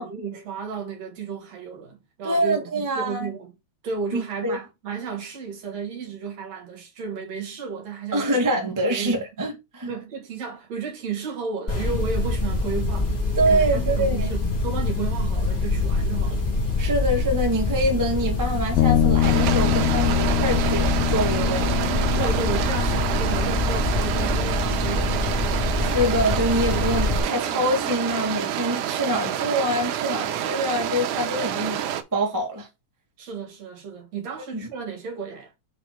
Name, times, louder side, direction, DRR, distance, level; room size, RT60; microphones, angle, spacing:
voice 1, 0.0-3.5 3.8-8.3 8.6-9.2 9.9-13.1 13.5-16.4 21.9-25.5 33.2-35.5, right 5 dB, 55° right, 2.4 m, -33 dB
voice 2, 2.2-3.3 4.1-4.6 8.1-9.9 13.4-14.3 16.8-21.8 22.2-22.3 25.6-32.7 34.5-34.7, right 1 dB, 20° right, 0.5 m, -25 dB
sound 1, 11.7-27.2, left 2 dB, 35° left, 0.6 m, -25 dB
sound 2, 18.8-28.2, left 12 dB, 80° left, 2.1 m, -27 dB
sound 3, 19.2-32.0, right 10 dB, 80° right, 2.1 m, -28 dB
5.4 x 4.0 x 5.7 m
omnidirectional pair, 3.9 m